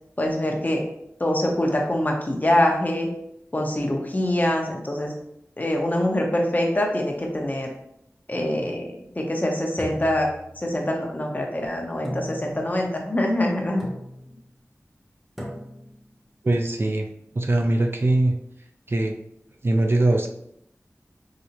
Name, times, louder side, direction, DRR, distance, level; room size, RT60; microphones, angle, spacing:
voice 1, 0.2-0.8 1.2-3.1 3.5-5.1 5.6-7.7 8.3-10.3 10.6-13.8, left 1 dB, 30° left, 0 dB, 0.7 m, -24 dB
sound 1, 9.8-11.0 12.0-12.8 13.8-14.4 15.4-16.0, equal, 5° right, 0.8 m, -37 dB
voice 2, 16.4-17.1 17.4-18.3 18.9-19.1 19.6-20.3, right 2 dB, 45° right, 3 dB, 0.4 m, -21 dB
4.8 x 2.0 x 2.8 m, 0.77 s
wide cardioid pair, 55°, 5 cm